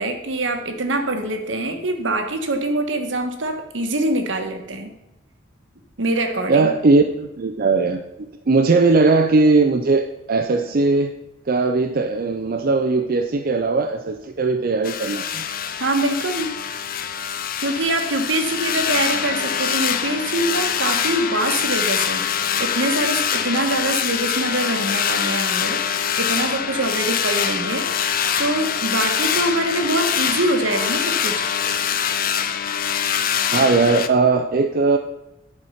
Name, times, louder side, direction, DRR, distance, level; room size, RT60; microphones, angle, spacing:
voice 1, 0.0-4.9 6.0-6.7 15.8-16.5 17.6-27.9 28.4-31.5, right 2 dB, 75° right, 5 dB, 1.2 m, -24 dB
voice 2, 6.5-8.0 8.5-11.1 11.5-15.4 33.5-35.0, right 3 dB, 50° right, 5 dB, 0.5 m, -18 dB
sound 1, 14.8-34.1, left 8 dB, 50° left, 0.5 m, -24 dB
10.5 x 4.7 x 5.6 m, 0.91 s
head